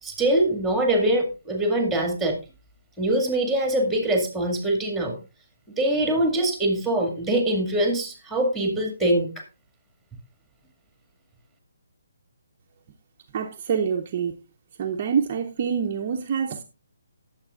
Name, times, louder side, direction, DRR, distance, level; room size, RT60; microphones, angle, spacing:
voice 1, 0.0-2.4 3.0-5.2 5.8-9.3, right 1 dB, ahead, 2.2 m, -23 dB
voice 2, 13.3-14.4 14.8-16.6, right 7 dB, 40° right, 0.8 m, -26 dB
18.5 x 7.4 x 2.5 m
figure-of-eight pair, 150°, 0 cm